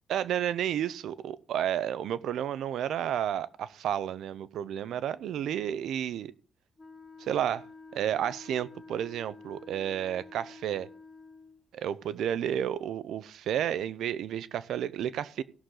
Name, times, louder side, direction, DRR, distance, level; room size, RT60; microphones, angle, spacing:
voice 1, 0.1-6.3 7.2-7.6 7.9-10.9 11.7-15.4, right 10 dB, 80° right, 17 dB, 0.6 m, -31 dB
Wind instrument woodwind instrument, 6.8-11.6, left 3 dB, 20° left, 3.2 m, -50 dB
17.5 x 6.5 x 3.8 m, 0.40 s
cardioid pair, 110°, 0 cm